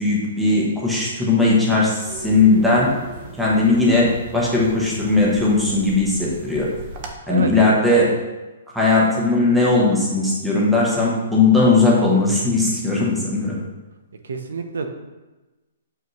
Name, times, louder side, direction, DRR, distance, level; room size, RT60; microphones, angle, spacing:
voice 1, 0.0-2.9 3.4-6.7 7.3-8.2 8.7-13.6, left 3 dB, ahead, -6 dB, 0.8 m, -18 dB
sound 1, 2.0-7.1, right 3 dB, 25° right, 0.5 m, -37 dB
voice 2, 7.3-7.7 14.2-14.9, right 4 dB, 80° right, 6 dB, 0.7 m, -28 dB
6.9 x 4.9 x 3.1 m, 1.1 s
hypercardioid pair, 180°, 0 cm